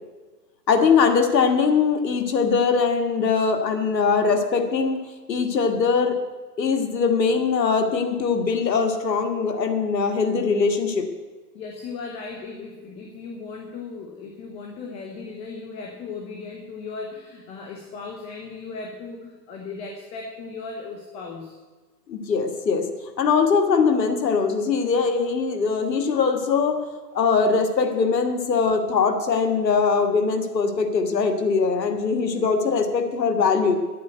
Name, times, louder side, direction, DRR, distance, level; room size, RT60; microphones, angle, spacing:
voice 1, 0.7-5.0 5.3-6.2 6.6-11.1 22.1-22.9 23.2-26.9 27.1-33.8, left 5 dB, 85° left, 6 dB, 1.8 m, -21 dB
voice 2, 11.5-21.5, left 4 dB, 15° left, 1 dB, 0.8 m, -37 dB
11.0 x 8.6 x 8.0 m, 1.3 s
hypercardioid pair, 155°, 49 cm